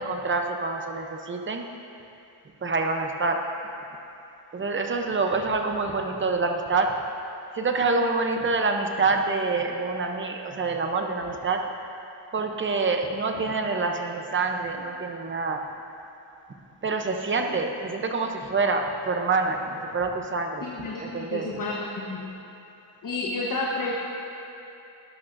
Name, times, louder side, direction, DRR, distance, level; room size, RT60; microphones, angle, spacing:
voice 1, 0.0-1.7 2.6-3.4 4.5-6.9 7.5-11.9 12.3-15.6 16.8-20.7 21.0-21.5, right 3 dB, 25° right, 3 dB, 0.7 m, -26 dB
voice 2, 20.6-21.7 22.1-22.3 23.0-23.9, left 3 dB, 45° left, -3 dB, 1.2 m, -30 dB
18.5 x 12.0 x 2.6 m, 2.8 s
wide cardioid pair, 180°, 47 cm